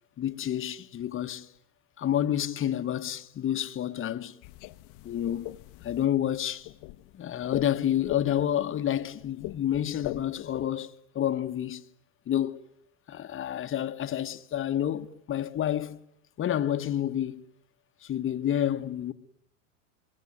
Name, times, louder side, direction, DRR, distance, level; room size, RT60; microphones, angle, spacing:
voice 1, 0.2-1.5 2.0-4.4 5.0-5.5 5.8-6.7 7.1-11.8 12.3-12.6 13.1-16.0 16.4-17.4 18.0-19.1, left 11 dB, 30° left, 1.2 m, -29 dB
sound 1, 4.4-10.7, left 18 dB, 50° left, 1.1 m, -41 dB
25.0 x 23.0 x 9.7 m
hypercardioid pair, 100°, 41 cm